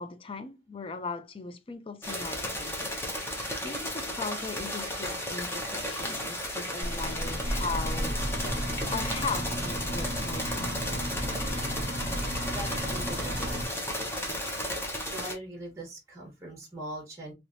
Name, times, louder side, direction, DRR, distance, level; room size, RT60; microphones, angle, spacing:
voice 1, 0.0-3.0 3.3-8.2 8.9-10.8, left 4 dB, 30° left, 0.4 m, -38 dB
sound 1, 2.0-15.3, equal, 15° left, 0.9 m, -34 dB
sound 2, 6.8-13.6, equal, 75° left, 1.1 m, -33 dB
voice 2, 12.5-13.7 15.1-17.3, right 1 dB, 15° right, 1.2 m, -41 dB
3.1 x 3.0 x 2.5 m
head